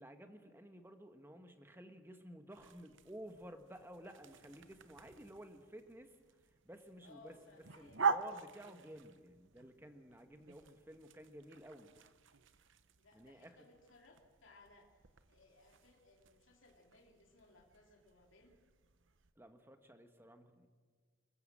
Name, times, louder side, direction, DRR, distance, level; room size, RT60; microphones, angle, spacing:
voice 1, 0.0-7.3 7.8-11.9 13.1-13.7 19.3-20.7, equal, 10° right, 7 dB, 1.4 m, -54 dB
sound 1, 2.5-19.3, right 5 dB, 60° right, 0.9 m, -45 dB
voice 2, 7.0-8.0 13.0-15.0 15.3-18.6, left 3 dB, 65° left, 1 dB, 2.9 m, -64 dB
27.5 x 15.0 x 7.5 m, 1.5 s
head